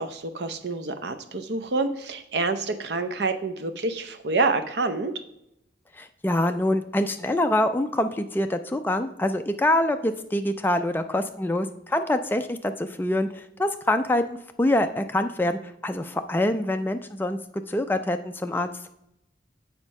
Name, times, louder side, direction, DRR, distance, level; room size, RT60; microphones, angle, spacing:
voice 1, 0.0-5.1, right 3 dB, 65° right, 9 dB, 0.6 m, -27 dB
voice 2, 6.0-17.4 17.7-18.9, left 1 dB, 10° left, 7 dB, 0.3 m, -25 dB
7.2 x 4.4 x 5.3 m, 0.83 s
head